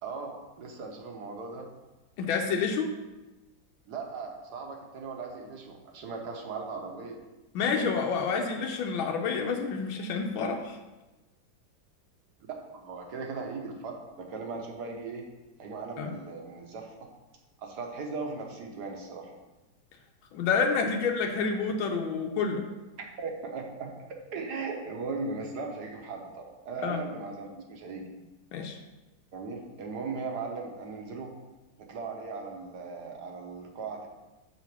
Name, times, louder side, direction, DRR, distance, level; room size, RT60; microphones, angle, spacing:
voice 1, 0.0-1.7 3.9-7.2 12.7-13.9 14.2-15.3 15.6-16.9 17.6-19.3 23.2-23.9 24.3-28.1 29.3-31.3 31.8-34.1, right 4 dB, 60° right, 2 dB, 1.4 m, -38 dB
voice 2, 2.2-2.9 7.5-10.8 16.0-16.1 20.3-22.6 26.8-27.0 28.5-28.8, left 5 dB, 85° left, 3 dB, 1.4 m, -28 dB
5.9 x 4.1 x 5.9 m, 1.1 s
omnidirectional pair, 2.1 m